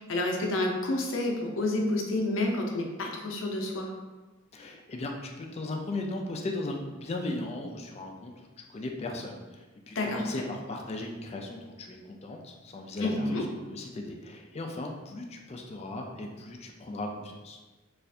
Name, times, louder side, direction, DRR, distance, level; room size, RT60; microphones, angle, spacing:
voice 1, 0.0-3.9 9.9-10.5 13.0-13.5, left 2 dB, 90° left, 1 dB, 0.6 m, -29 dB
voice 2, 4.5-13.1 13.7-17.6, left 2 dB, 35° left, 2 dB, 0.4 m, -37 dB
4.1 x 2.5 x 2.6 m, 1.2 s
head